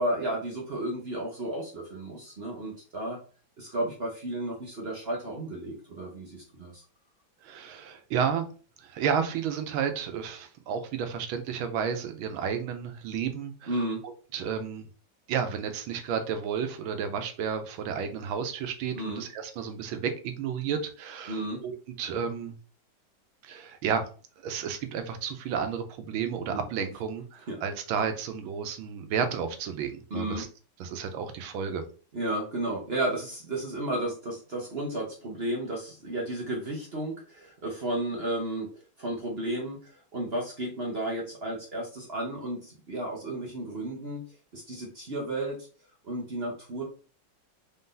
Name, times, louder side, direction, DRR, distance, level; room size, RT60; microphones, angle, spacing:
voice 1, 0.0-3.2 3.6-6.8 13.7-14.0 18.9-19.2 21.3-21.6 26.5-26.6 27.5-27.6 30.1-30.5 32.1-38.7 39.0-44.2 44.5-45.6 46.0-46.8, right 1 dB, 45° right, -2 dB, 0.8 m, -33 dB
voice 2, 7.4-8.5 8.8-13.7 14.0-14.9 15.3-22.6 23.4-24.0 24.4-30.5 30.8-31.8, right 7 dB, 90° right, 7 dB, 1.5 m, -32 dB
4.3 x 2.7 x 3.7 m, 0.39 s
omnidirectional pair, 2.2 m